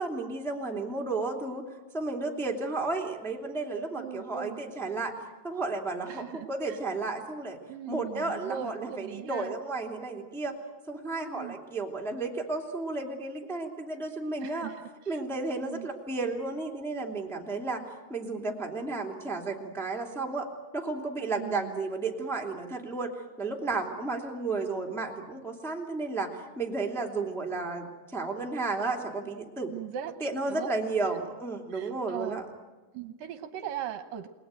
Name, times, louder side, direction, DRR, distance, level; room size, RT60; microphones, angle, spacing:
voice 1, 0.0-1.6 1.9-5.1 5.4-7.6 7.9-10.5 10.9-14.7 15.1-17.8 18.1-20.5 20.7-23.1 23.4-29.7 30.2-32.4, right 3 dB, ahead, 1 dB, 1.9 m, -33 dB
voice 2, 4.0-4.6 6.1-6.8 7.7-9.5 11.1-11.6 14.4-15.2 15.6-15.9 21.4-21.8 29.7-30.7 31.7-32.4 32.9-34.3, right 9 dB, 70° right, 9 dB, 2.5 m, -39 dB
29.5 x 20.0 x 9.1 m, 1.3 s
omnidirectional pair, 4.4 m